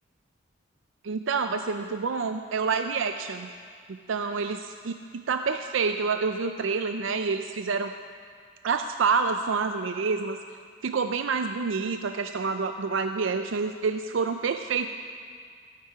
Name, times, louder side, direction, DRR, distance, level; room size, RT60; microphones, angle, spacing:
voice 1, 1.0-3.5 4.1-7.9 8.6-10.4 10.8-14.9, right 5 dB, 85° right, 7 dB, 0.5 m, -28 dB
17.5 x 9.5 x 4.8 m, 2.1 s
head